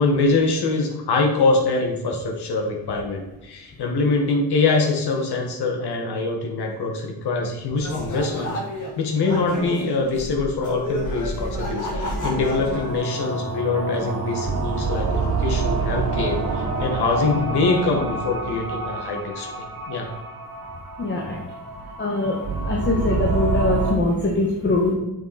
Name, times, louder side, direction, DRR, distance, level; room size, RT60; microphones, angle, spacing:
voice 1, 0.0-8.6 9.0-20.1, left 3 dB, 90° left, 2 dB, 1.8 m, -24 dB
sound 1, 7.8-8.9 9.2-12.9, equal, 50° left, 3.3 m, -30 dB
sound 2, 11.7-23.9, right 3 dB, 65° right, 2.3 m, -27 dB
voice 2, 21.0-21.4 22.0-24.9, left 2 dB, 30° left, -2 dB, 1.5 m, -22 dB
9.7 x 7.1 x 4.3 m, 1.0 s
wide cardioid pair, 175°, 38 cm